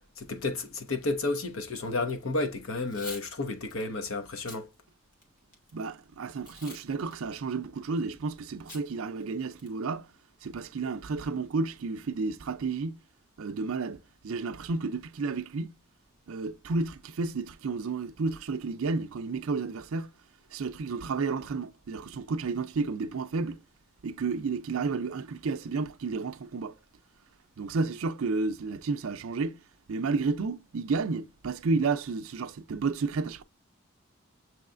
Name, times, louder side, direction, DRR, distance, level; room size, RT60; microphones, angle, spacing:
voice 1, 0.2-4.7, left 2 dB, 70° left, 1.0 m, -32 dB
Packing tape duct tape / Tearing, 2.8-3.3 3.7-3.8 4.3-4.6 5.1-5.7 6.4-6.8 7.1-7.2 8.7-8.8 9.2-9.3 9.6-9.9, left 2 dB, 40° left, 1.4 m, -44 dB
voice 2, 5.7-10.1 10.4-13.0 13.4-15.7 16.3-20.1 20.5-23.6 24.0-26.7 27.6-29.6 29.9-33.4, right 4 dB, 70° right, 0.5 m, -31 dB
6.8 x 3.2 x 2.5 m
head